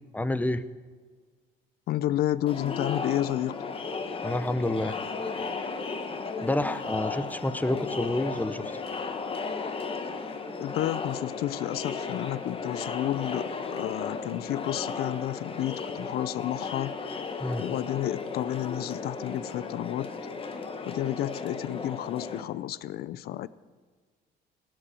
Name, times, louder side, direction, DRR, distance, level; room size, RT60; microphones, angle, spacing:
voice 1, 0.1-0.6 4.2-4.9 6.4-8.7 17.4-17.6, left 1 dB, 10° left, 13 dB, 0.7 m, -28 dB
voice 2, 1.9-3.6 10.6-17.0 17.6-20.1 20.9-23.5, left 13 dB, 65° left, 18 dB, 0.5 m, -31 dB
Crowd, 2.5-22.4, left 4 dB, 35° left, 1.2 m, -35 dB
17.5 x 7.5 x 8.3 m, 1.5 s
cardioid pair, 110°, 17 cm